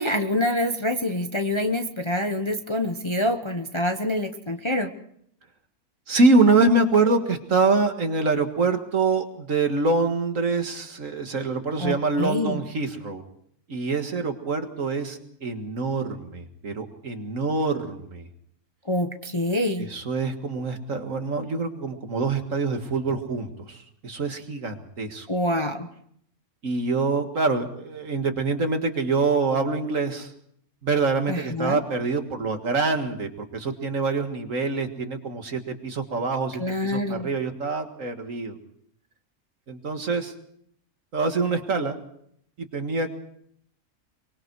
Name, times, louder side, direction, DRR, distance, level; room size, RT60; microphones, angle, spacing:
voice 1, 0.0-4.9 11.8-12.6 18.9-19.9 25.3-25.9 31.3-31.8 36.6-37.3, left 1 dB, 20° left, 6 dB, 0.9 m, -26 dB
voice 2, 6.1-13.2 13.7-18.3 19.8-25.3 26.6-30.3 30.8-38.6 39.7-40.3 41.1-42.0 42.6-43.1, right 3 dB, 60° right, 6 dB, 2.1 m, -25 dB
23.5 x 23.5 x 4.7 m, 0.67 s
omnidirectional pair, 1.6 m